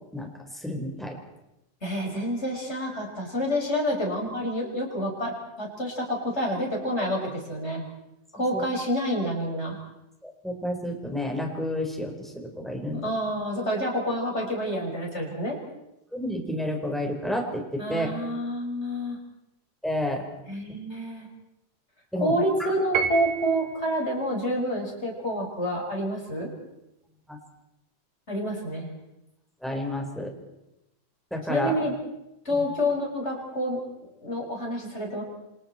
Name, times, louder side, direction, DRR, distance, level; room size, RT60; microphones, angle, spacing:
voice 1, 0.6-1.1 8.5-8.6 10.2-13.1 16.1-18.1 19.8-20.2 22.1-22.3 27.3-27.4 29.6-30.3 31.3-31.7 32.5-32.6, left 1 dB, ahead, 1 dB, 4.3 m, -30 dB
voice 2, 1.8-5.3 5.6-7.8 8.3-9.8 13.0-15.6 17.8-19.2 20.5-21.3 22.2-26.5 28.3-28.9 31.5-31.9 32.4-33.8 34.2-35.2, equal, 20° left, -1 dB, 6.2 m, -28 dB
Piano, 22.9-23.8, right 7 dB, 85° right, 2.9 m, -29 dB
28.5 x 26.5 x 4.5 m, 0.89 s
omnidirectional pair, 3.6 m